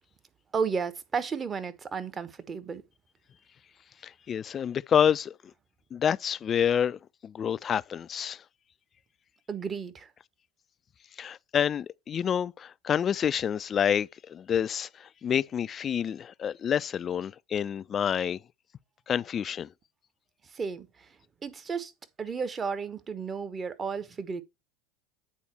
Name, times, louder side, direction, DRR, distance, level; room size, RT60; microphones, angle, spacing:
voice 1, 0.5-2.8 9.5-10.1 20.4-21.2 21.4-21.9 22.2-24.4, right 5 dB, 25° right, 0.9 m, -33 dB
voice 2, 4.0-5.3 5.9-8.4 11.2-18.4 19.1-19.7, left 8 dB, 35° left, 0.3 m, -28 dB
8.5 x 4.2 x 4.2 m
hypercardioid pair, 80°, 0 cm